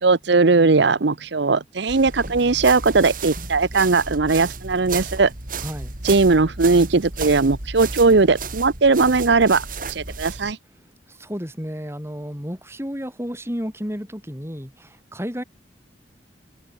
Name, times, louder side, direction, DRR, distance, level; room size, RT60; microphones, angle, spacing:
voice 1, 0.0-5.3 6.0-10.6, right 3 dB, 65° right, 0.8 m, -18 dB
sound 1, 1.9-10.5, right 4 dB, 45° right, 3.2 m, -33 dB
voice 2, 5.6-5.9 11.1-15.4, equal, 15° right, 4.8 m, -32 dB
head